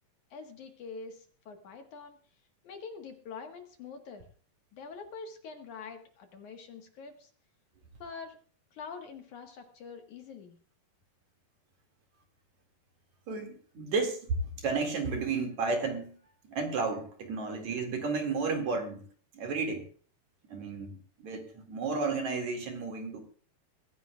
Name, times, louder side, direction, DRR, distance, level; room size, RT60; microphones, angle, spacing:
voice 1, 0.3-2.2 2.6-4.2 4.7-7.3 8.0-8.4 8.7-10.6, left 5 dB, 60° left, 4 dB, 2.7 m, -45 dB
voice 2, 13.3-16.2 16.5-19.1 19.3-19.8 20.5-23.2, right 4 dB, 55° right, 3 dB, 3.3 m, -32 dB
22.5 x 15.0 x 2.4 m, 0.42 s
omnidirectional pair, 4.3 m